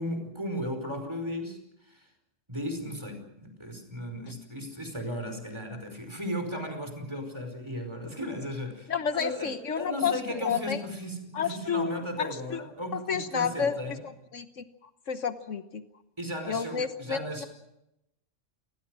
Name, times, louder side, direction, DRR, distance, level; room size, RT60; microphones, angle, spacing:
voice 1, 0.0-1.6 1.9-2.1 2.5-14.0 16.2-17.5, equal, 20° right, 6 dB, 5.1 m, -36 dB
voice 2, 8.9-10.2 10.4-10.8 11.3-12.6 12.9-14.0 14.3-14.6 15.1-15.8 16.5-17.4, left 7 dB, 75° left, 10 dB, 1.5 m, -30 dB
29.0 x 21.0 x 6.3 m, 0.87 s
omnidirectional pair, 1.3 m